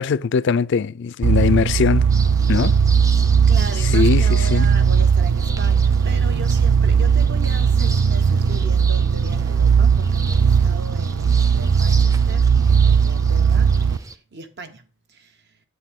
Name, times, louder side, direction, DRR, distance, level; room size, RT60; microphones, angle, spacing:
voice 1, 0.0-2.1 2.5-2.7 3.9-4.7, left 6 dB, 60° left, 0.4 m, -20 dB
sound 1, 1.2-14.0, right 6 dB, 90° right, 0.4 m, -17 dB
sound 2, 2.1-14.2, right 2 dB, 15° right, 0.6 m, -37 dB
voice 2, 3.5-15.4, right 3 dB, 55° right, 1.1 m, -37 dB
9.8 x 8.3 x 3.6 m
head